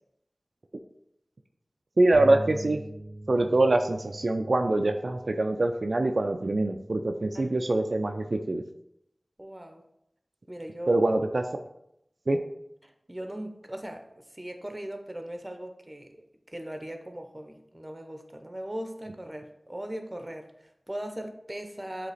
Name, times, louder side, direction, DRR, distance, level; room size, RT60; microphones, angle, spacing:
voice 1, 2.0-2.8 3.3-8.6 10.9-11.4 12.3-12.4, right 2 dB, 75° right, 4 dB, 0.4 m, -24 dB
sound 1, 2.1-8.4, right 1 dB, ahead, 1.4 m, -43 dB
voice 2, 9.4-9.8 10.5-11.0 12.8-16.3 16.5-22.1, right 1 dB, 25° right, 5 dB, 0.8 m, -39 dB
7.9 x 2.9 x 4.1 m, 0.79 s
wide cardioid pair, 60°, 0 cm